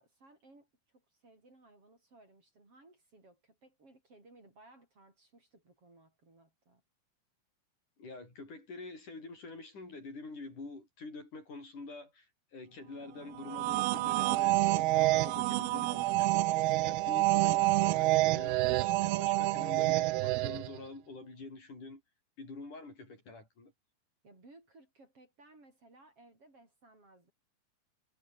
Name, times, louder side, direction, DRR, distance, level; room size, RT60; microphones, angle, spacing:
voice 1, 0.0-6.8 24.2-27.3, right 2 dB, 35° right, 7.8 m, -60 dB
voice 2, 8.0-22.0 22.4-23.7, left 3 dB, 50° left, 9.5 m, -46 dB
sound 1, 13.4-20.8, right 19 dB, 85° right, 2.7 m, -28 dB
omnidirectional pair, 4.5 m